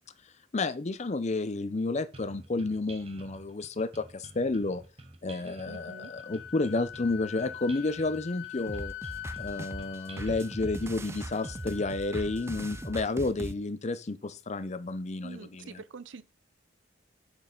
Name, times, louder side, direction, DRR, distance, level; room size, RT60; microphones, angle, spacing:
voice 1, 0.5-4.8 5.2-8.9 9.4-15.8, left 3 dB, 35° left, 0.6 m, -31 dB
sound 1, 2.1-11.7, right 2 dB, 30° right, 1.0 m, -51 dB
Wind instrument woodwind instrument, 5.3-13.0, left 11 dB, 80° left, 0.7 m, -44 dB
voice 2, 5.7-6.1 15.2-16.2, right 4 dB, 85° right, 0.7 m, -45 dB
sound 2, 8.7-13.5, right 1 dB, 15° right, 0.4 m, -39 dB
6.3 x 6.2 x 5.3 m
head